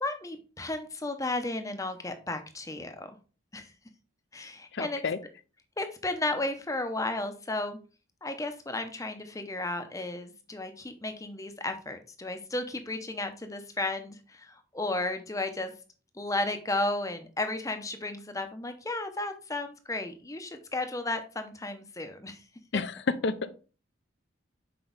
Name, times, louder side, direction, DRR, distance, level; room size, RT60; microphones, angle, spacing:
voice 1, 0.0-3.1 3.5-3.7 4.3-5.0 5.8-7.8 8.2-15.7 16.1-22.4 22.7-22.8, left 2 dB, 15° left, 7 dB, 0.6 m, -33 dB
voice 2, 4.7-5.2 22.7-23.5, left 4 dB, 55° left, 14 dB, 0.5 m, -30 dB
6.0 x 4.5 x 3.9 m, 0.36 s
head